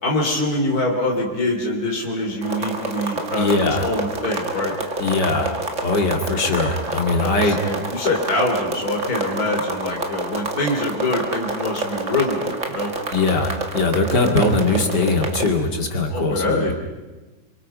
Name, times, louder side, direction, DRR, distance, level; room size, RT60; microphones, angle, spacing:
voice 1, 0.0-4.7 7.2-12.9 16.1-16.7, left 2 dB, 60° left, 0 dB, 3.6 m, -24 dB
sound 1, 2.4-15.5, right 2 dB, 45° right, 2.5 m, -28 dB
voice 2, 3.4-3.9 5.0-5.5 5.8-7.6 13.1-16.7, left 3 dB, 85° left, 3 dB, 3.0 m, -21 dB
28.5 x 25.0 x 5.5 m, 1.2 s
omnidirectional pair, 1.8 m